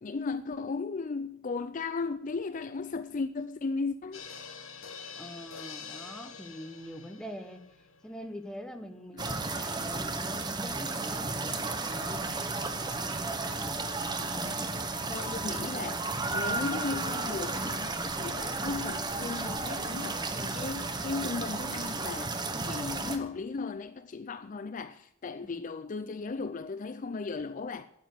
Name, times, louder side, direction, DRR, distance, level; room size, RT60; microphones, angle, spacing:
voice 1, 0.0-4.3 9.1-9.4 14.2-14.7 15.1-22.3 22.7-27.9, left 4 dB, 40° left, 0.4 m, -36 dB
sound 1, 4.1-9.2 9.5-9.6 9.9-10.0, left 6 dB, 70° left, 1.6 m, -46 dB
voice 2, 5.2-7.6 8.0-12.3 25.4-25.5, equal, 5° left, 1.1 m, -44 dB
sound 2, 9.2-23.2, right 3 dB, 20° right, 1.0 m, -33 dB
9.4 x 9.0 x 9.2 m
head